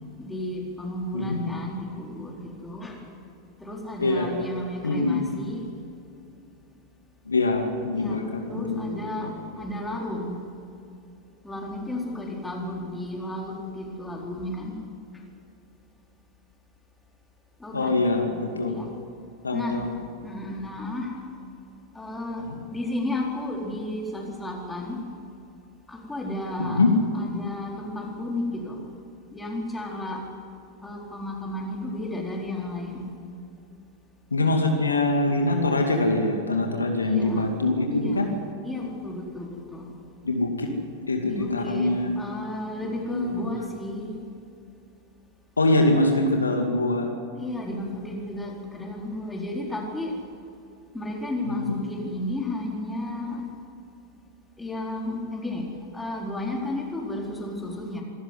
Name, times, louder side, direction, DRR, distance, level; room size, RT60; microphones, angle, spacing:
voice 1, 0.2-3.0 3.6-5.7 7.9-8.2 8.5-10.4 11.4-14.8 17.6-18.0 18.7-18.9 19.5-19.9 20.2-21.2 21.9-25.0 25.9-26.8 27.1-28.9 29.3-30.2 30.8-33.1 37.0-37.5 37.9-38.3 38.6-39.9 40.7-40.8 41.2-44.1 47.4-50.1 50.9-53.4 54.6-58.0, left 1 dB, 10° left, -1 dB, 4.2 m, -33 dB
voice 2, 4.0-4.3 4.8-5.3 7.3-9.3 17.7-18.8 19.4-20.0 22.4-22.6 26.6-26.9 34.3-38.3 40.2-40.7 41.1-42.2 43.1-43.5 45.6-47.1 51.5-51.6, left 2 dB, 75° left, 3 dB, 2.3 m, -24 dB
25.5 x 14.0 x 9.8 m, 2.6 s
figure-of-eight pair, 90°, 0 cm